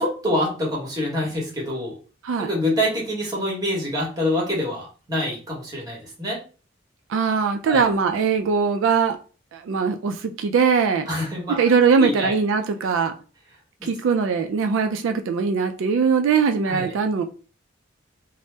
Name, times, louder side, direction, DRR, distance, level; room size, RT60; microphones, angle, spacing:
voice 1, 0.0-1.9 2.4-6.4 7.7-7.9 11.1-11.7 12.0-12.3 13.8-13.9 16.7-16.9, left 1 dB, 20° right, 1.1 m, -26 dB
voice 2, 7.1-9.2 9.5-11.1 11.5-13.1 13.8-17.2, right 5 dB, 85° right, 0.3 m, -21 dB
2.7 x 2.0 x 3.2 m
head